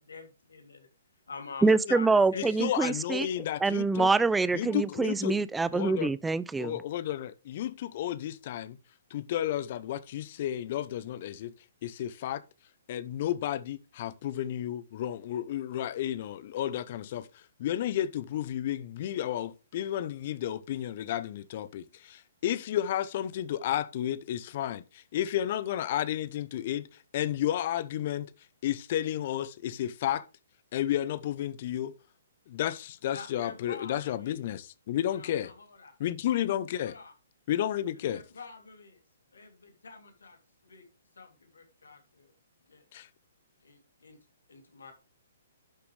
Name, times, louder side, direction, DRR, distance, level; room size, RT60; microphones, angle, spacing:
voice 1, 0.0-0.9 1.3-2.8 33.1-34.4 35.1-35.9 36.7-37.1 38.1-39.0 39.3-40.4 40.6-40.8 41.2-42.3 42.7-42.8 43.6-44.2 44.5-44.9, left 4 dB, 80° left, 3.0 m, -46 dB
voice 2, 1.6-3.3 3.6-6.7, right 3 dB, 5° right, 0.3 m, -25 dB
voice 3, 2.3-4.1 4.5-5.4 5.7-6.1 6.6-8.8 9.1-11.5 11.8-12.4 12.9-26.9 27.1-28.3 28.6-30.2 30.7-31.9 32.5-35.5 36.0-36.9 37.5-38.2 42.9-43.1, left 11 dB, 50° left, 0.7 m, -32 dB
11.5 x 6.9 x 3.3 m
hypercardioid pair, 130°, 0 cm